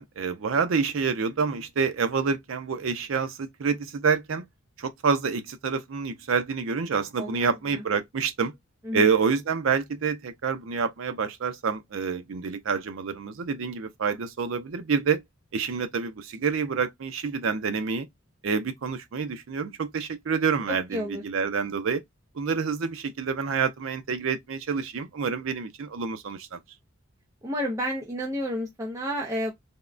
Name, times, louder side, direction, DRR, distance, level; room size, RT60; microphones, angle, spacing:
voice 1, 0.0-4.4 4.8-8.5 8.9-15.2 15.5-18.1 18.4-22.0 22.3-26.6, right 5 dB, 70° right, 0.5 m, -27 dB
voice 2, 7.2-7.8 8.8-9.0 20.9-21.2 27.4-29.5, equal, 15° right, 0.5 m, -31 dB
3.5 x 2.0 x 2.4 m
head